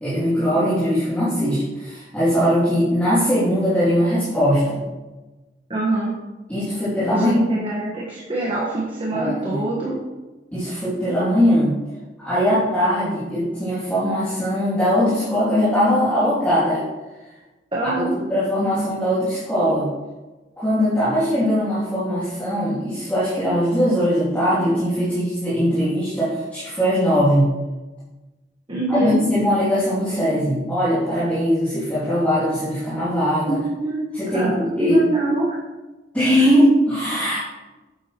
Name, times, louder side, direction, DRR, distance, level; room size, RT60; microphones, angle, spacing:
voice 1, 0.0-4.8 6.5-7.4 9.1-9.6 10.5-11.8 12.2-16.8 18.1-19.9 20.6-27.5 28.9-33.6 34.1-34.9 36.1-37.4, equal, 10° left, -12 dB, 2.6 m, -20 dB
voice 2, 5.7-6.1 7.1-10.0 17.7-18.1 28.7-29.2 33.5-34.0 34.3-35.5 36.4-36.5, right 2 dB, 30° right, -5 dB, 1.4 m, -24 dB
8.4 x 8.4 x 3.0 m, 1.1 s
head